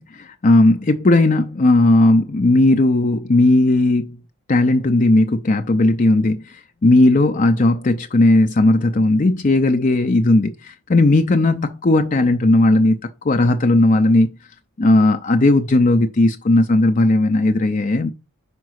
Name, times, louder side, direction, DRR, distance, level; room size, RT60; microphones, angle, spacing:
voice 1, 0.1-4.2 4.5-13.0 13.2-14.3 14.8-18.1, left 2 dB, 35° left, 0.5 m, -16 dB
5.2 x 4.7 x 6.3 m
head